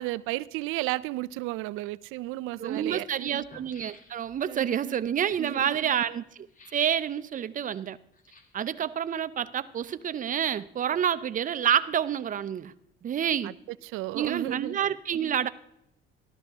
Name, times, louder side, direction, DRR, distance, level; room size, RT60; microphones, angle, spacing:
voice 1, 0.0-3.4 4.5-5.0 5.4-5.9 13.4-13.5 13.8-14.8, right 18 dB, 85° right, 17 dB, 0.5 m, -33 dB
sound 1, 2.0-2.1 2.9-3.0 3.3-4.5 6.5-7.0 8.1-8.7 9.5-10.3 10.6-10.7, left 3 dB, 40° left, 1.7 m, -55 dB
voice 2, 2.6-6.2 6.7-8.0 8.5-12.7 13.0-13.6 14.1-15.5, right 9 dB, 40° right, 14 dB, 0.6 m, -28 dB
13.0 x 13.0 x 3.6 m, 0.78 s
cardioid pair, 100°, 21 cm